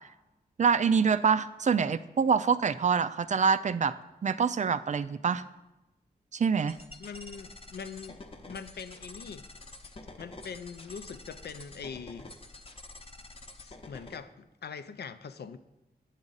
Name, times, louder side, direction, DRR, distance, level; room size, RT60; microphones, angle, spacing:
voice 1, 0.6-3.9 4.2-5.4 6.3-6.8, right 6 dB, 45° right, 14 dB, 0.4 m, -25 dB
sound 1, 6.7-14.2, left 2 dB, 35° left, 0.8 m, -48 dB
voice 2, 7.0-8.2 8.4-9.5 10.2-12.2 13.6-15.6, left 6 dB, 80° left, 11 dB, 0.5 m, -42 dB
8.8 x 7.3 x 4.0 m, 0.99 s
wide cardioid pair, 85°, 17 cm